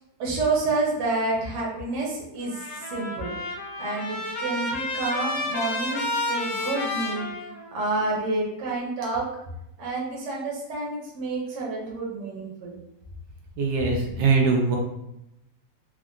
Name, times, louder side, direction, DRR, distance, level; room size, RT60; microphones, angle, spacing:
voice 1, 0.2-2.6 2.9-3.3 3.8-7.3 7.7-9.3 9.8-12.7, right 3 dB, 55° right, -3 dB, 1.0 m, -29 dB
Trumpet, 2.4-8.0, left 2 dB, 75° left, 1.1 m, -31 dB
voice 2, 13.6-14.8, right 4 dB, 80° right, 0 dB, 1.2 m, -22 dB
3.5 x 2.1 x 2.4 m, 0.86 s
omnidirectional pair, 1.8 m